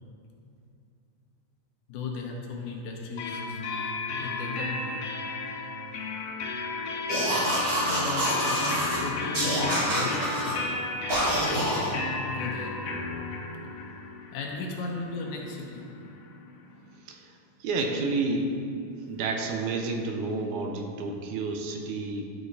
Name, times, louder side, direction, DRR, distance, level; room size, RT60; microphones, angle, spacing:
voice 1, 1.9-3.6 4.2-5.0 7.6-10.7 11.6-11.9 12.3-12.7 14.3-15.9, left 3 dB, 75° left, 0 dB, 2.2 m, -36 dB
sound 1, 3.2-16.8, left 3 dB, 90° left, 1.3 m, -34 dB
sound 2, 7.1-9.0 9.3-10.6 11.1-11.9, right 1 dB, 45° right, 2.5 m, -27 dB
voice 2, 17.6-18.5 19.1-22.2, right 3 dB, 80° right, 3 dB, 2.1 m, -30 dB
11.5 x 4.9 x 4.1 m, 2.5 s
omnidirectional pair, 3.6 m